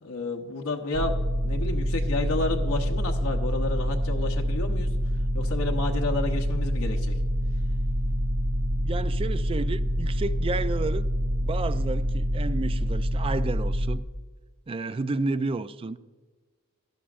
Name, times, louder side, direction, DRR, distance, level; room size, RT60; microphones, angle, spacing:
voice 1, 0.0-4.9 5.3-7.2, left 2 dB, 80° left, 0.9 m, -31 dB
sound 1, 0.9-14.0, equal, 70° right, 0.8 m, -26 dB
voice 2, 8.8-11.1 11.4-14.0 14.7-16.0, right 3 dB, 25° right, 0.3 m, -31 dB
15.5 x 11.5 x 2.5 m
head